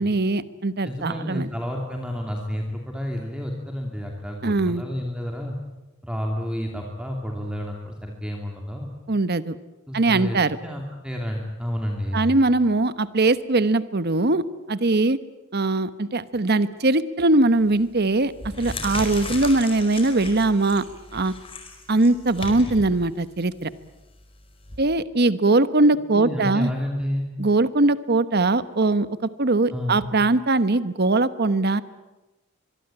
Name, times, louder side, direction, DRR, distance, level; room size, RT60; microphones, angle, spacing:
voice 1, 0.0-1.5 4.4-4.8 9.1-9.6 9.9-10.6 12.1-15.2 15.5-18.3 18.6-20.8 21.1-21.3 21.9-23.7 24.8-26.7 27.4-29.1 29.4-31.8, right 2 dB, 50° right, 14 dB, 1.1 m, -21 dB
voice 2, 0.8-5.5 6.0-8.9 9.9-12.3 26.1-27.3 29.7-30.0, equal, 5° right, 1 dB, 2.6 m, -30 dB
sound 1, 17.5-17.8 18.3-24.8, left 2 dB, 25° left, 4.9 m, -36 dB
24.0 x 23.0 x 9.0 m, 1.1 s
head